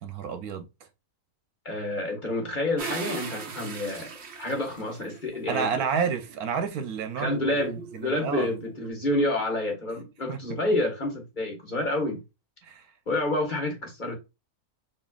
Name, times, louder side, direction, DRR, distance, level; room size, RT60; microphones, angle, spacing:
voice 1, 0.0-0.7 5.5-7.4 7.9-8.5 10.3-10.4 12.6-12.9, right 6 dB, 85° right, 1.3 m, -30 dB
voice 2, 1.6-5.7 7.2-12.2 13.1-14.2, left 1 dB, 35° left, 1.3 m, -29 dB
sound 1, 2.8-5.4 6.0-8.9, right 5 dB, 55° right, 1.0 m, -40 dB
4.4 x 3.0 x 2.3 m
omnidirectional pair, 1.5 m